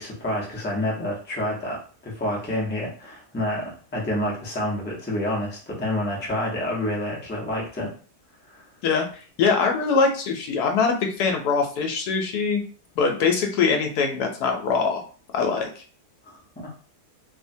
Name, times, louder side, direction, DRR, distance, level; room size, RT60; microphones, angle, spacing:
voice 1, 0.0-7.9 8.4-8.6 16.2-16.7, left 1 dB, 15° left, -3 dB, 0.4 m, -28 dB
voice 2, 9.4-12.6 13.0-15.0 15.3-15.8, left 5 dB, 75° left, 3 dB, 1.1 m, -22 dB
3.0 x 2.1 x 2.6 m, 0.40 s
omnidirectional pair, 1.7 m